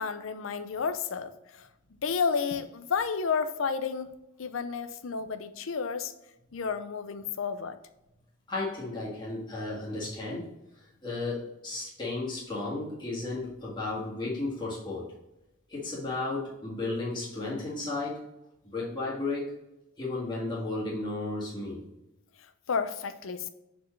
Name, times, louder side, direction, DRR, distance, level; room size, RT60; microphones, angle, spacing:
voice 1, 0.0-1.7 2.0-4.1 4.4-6.1 6.5-7.8 22.7-23.5, left 5 dB, 70° left, 0.5 m, -31 dB
voice 2, 8.5-10.5 10.8-15.1 15.7-18.2 18.7-19.5 20.0-21.8, left 2 dB, 20° left, 1.9 m, -34 dB
6.6 x 4.5 x 3.2 m
head